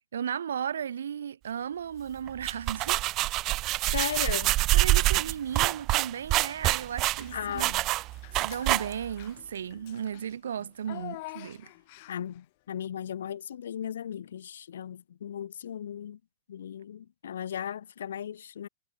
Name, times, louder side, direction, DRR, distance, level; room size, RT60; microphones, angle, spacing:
voice 1, 0.1-3.0 3.8-4.1 4.7-7.7 8.4-11.7, right 8 dB, 75° right, 4.1 m, -35 dB
sound 1, 2.3-9.2, right 18 dB, 40° right, 0.5 m, -26 dB
voice 2, 3.9-4.6 7.3-7.9 12.1-16.2 16.5-18.7, left 9 dB, 75° left, 2.8 m, -36 dB
Child speech kid speaking / Bathtub (filling or washing), 6.8-7.7 8.1-12.4, left 22 dB, 55° left, 6.8 m, -46 dB
hypercardioid pair, 100°, 0 cm